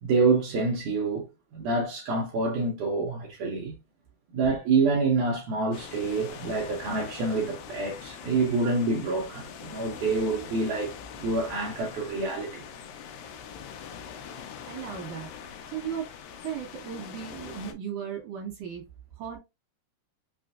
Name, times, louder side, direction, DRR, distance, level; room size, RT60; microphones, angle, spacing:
voice 1, 0.0-1.3 1.5-3.7 4.3-10.9 11.2-12.6, right 3 dB, 85° right, 1.8 m, -27 dB
sound 1, 5.7-17.7, left 7 dB, 80° left, 2.5 m, -43 dB
voice 2, 14.7-15.3 15.7-16.1 16.4-18.9 19.2-19.4, right 8 dB, 60° right, 2.5 m, -36 dB
5.9 x 2.5 x 2.4 m
omnidirectional pair, 4.4 m